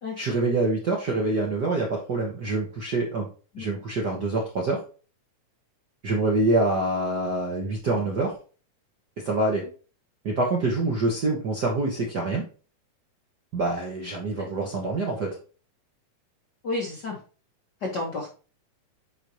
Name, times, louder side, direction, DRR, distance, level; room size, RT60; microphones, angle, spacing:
voice 1, 0.2-3.3 3.6-4.8 6.0-8.3 9.2-9.6 10.2-12.4 13.5-15.3, right 2 dB, 55° right, -1 dB, 1.2 m, -25 dB
voice 2, 16.6-17.2 17.8-18.3, left 2 dB, 50° left, -2 dB, 1.3 m, -31 dB
9.9 x 4.0 x 3.0 m, 0.37 s
omnidirectional pair, 3.5 m